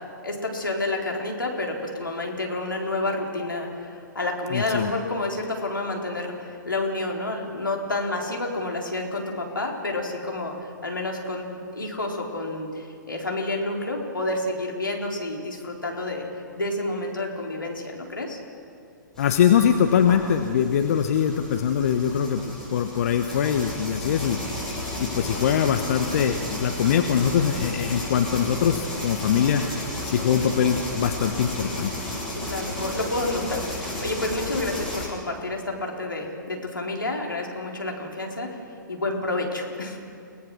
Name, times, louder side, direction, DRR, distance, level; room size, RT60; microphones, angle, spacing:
voice 1, 0.2-16.3 16.6-18.4 32.3-38.6 38.9-40.0, left 2 dB, 80° left, 0 dB, 4.1 m, -29 dB
voice 2, 4.5-4.9 19.2-24.4 25.0-29.6 30.0-31.9, left 8 dB, 45° left, 7 dB, 1.2 m, -22 dB
sound 1, 19.2-35.1, left 1 dB, 5° left, 7.3 m, -33 dB
30.0 x 18.0 x 6.3 m, 2.5 s
figure-of-eight pair, 120°, 11 cm